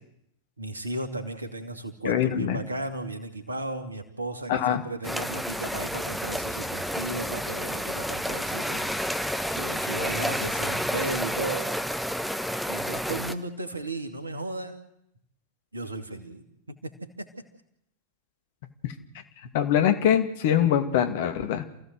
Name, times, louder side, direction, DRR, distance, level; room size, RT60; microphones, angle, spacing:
voice 1, 0.6-8.9 9.5-11.7 12.7-14.8 15.7-17.3, right 2 dB, 80° right, 7 dB, 2.6 m, -35 dB
voice 2, 2.0-2.6 4.5-4.8 18.8-18.9 19.5-21.6, left 9 dB, 50° left, 8 dB, 2.3 m, -23 dB
sound 1, 5.0-13.3, equal, ahead, 1.2 m, -30 dB
28.5 x 16.0 x 7.8 m, 0.77 s
figure-of-eight pair, 90°, 0 cm